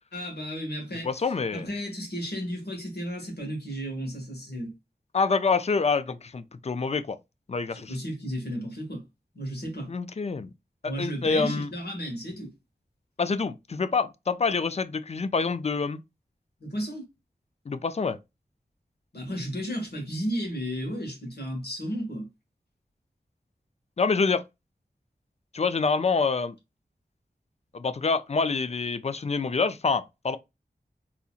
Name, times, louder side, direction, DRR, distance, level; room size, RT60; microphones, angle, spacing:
voice 1, 0.1-1.2 1.5-4.7 7.7-9.0 9.3-9.9 10.8-12.5 16.6-17.0 19.1-22.3, equal, 75° left, 1.6 m, -33 dB
voice 2, 1.0-1.7 5.1-7.2 7.5-7.9 9.9-10.5 10.8-11.7 13.2-16.0 17.7-18.2 24.0-24.4 25.5-26.5 27.7-30.4, left 4 dB, 40° left, 0.4 m, -26 dB
4.0 x 2.8 x 2.4 m
wide cardioid pair, 65°, 17 cm